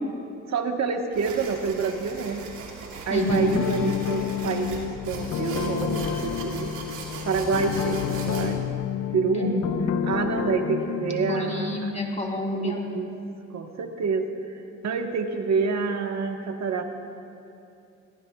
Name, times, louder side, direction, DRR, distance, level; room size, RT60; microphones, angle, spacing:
voice 1, 0.5-2.5 3.1-6.7 7.2-8.6 9.1-9.6 10.0-11.9 12.6-13.1 13.5-14.3 14.5-16.8, right 5 dB, 60° right, 4 dB, 1.4 m, -27 dB
sound 1, 1.1-8.5, right 4 dB, 90° right, 2.5 m, -39 dB
voice 2, 3.1-3.6 9.3-9.9 11.2-12.8, left 2 dB, 25° left, 0 dB, 3.1 m, -28 dB
sound 2, 3.3-11.8, left 9 dB, 65° left, 0.6 m, -30 dB
23.0 x 18.0 x 2.4 m, 2.7 s
cardioid pair, 90°, 30 cm